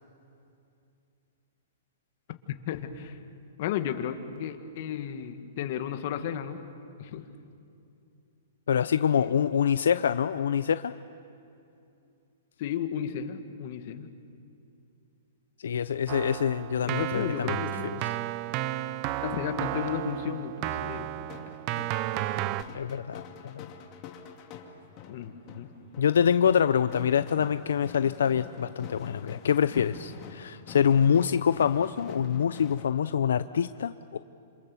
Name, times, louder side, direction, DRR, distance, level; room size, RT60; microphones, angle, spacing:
voice 1, 2.7-3.2 3.6-6.6 7.0-7.3 9.1-9.3 12.6-14.1 16.8-17.8 19.2-21.6 25.1-25.7, left 9 dB, 50° left, 7 dB, 1.8 m, -34 dB
voice 2, 8.7-10.9 15.6-17.6 22.7-23.7 26.0-34.2, left 8 dB, 85° left, 12 dB, 0.6 m, -25 dB
Keyboard (musical), 16.1-22.6, right 14 dB, 35° right, 0.6 m, -33 dB
sound 1, 20.9-32.8, left 7 dB, 30° left, 2.4 m, -46 dB
27.0 x 26.5 x 7.1 m, 2.6 s
hypercardioid pair, 155°, 0 cm